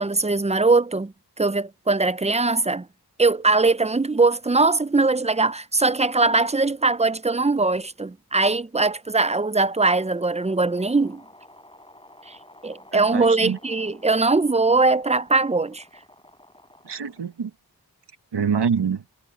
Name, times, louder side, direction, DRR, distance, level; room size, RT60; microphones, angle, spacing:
voice 1, 0.0-2.9 3.2-11.2 12.3-12.4 12.6-15.8, right 3 dB, 15° right, 0.5 m, -21 dB
sound 1, 9.5-17.5, left 1 dB, 15° left, 4.5 m, -52 dB
voice 2, 12.9-13.6 16.8-17.5 18.3-19.0, right 6 dB, 90° right, 1.0 m, -25 dB
wide cardioid pair, 65°, 40 cm